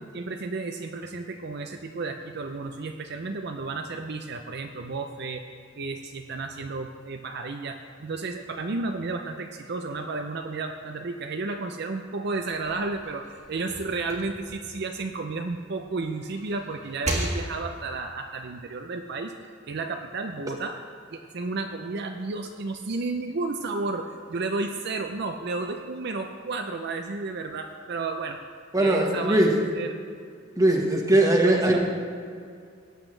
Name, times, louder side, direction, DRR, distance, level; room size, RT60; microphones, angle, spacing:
voice 1, 0.1-5.4 5.8-19.3 19.7-20.8 21.1-28.4 28.7-30.0 31.4-31.8, right 3 dB, 55° right, 5 dB, 0.5 m, -32 dB
sound 1, 12.6-15.7 16.1-17.9, right 1 dB, 35° right, 1.6 m, -35 dB
voice 2, 28.7-29.5 30.6-31.8, right 1 dB, 15° right, 0 dB, 1.4 m, -20 dB
18.0 x 8.3 x 3.3 m, 2.3 s
head